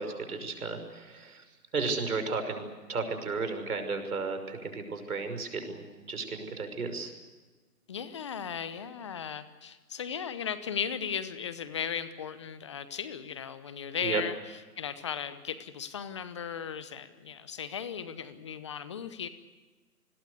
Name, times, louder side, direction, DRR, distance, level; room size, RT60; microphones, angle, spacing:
voice 1, 0.0-1.4 1.7-2.6 2.9-7.1 14.0-14.2, right 4 dB, 60° right, 7 dB, 5.9 m, -34 dB
voice 2, 7.9-19.3, left 7 dB, 20° left, 13 dB, 0.8 m, -36 dB
28.5 x 21.0 x 6.7 m, 1.3 s
figure-of-eight pair, 145°, 49 cm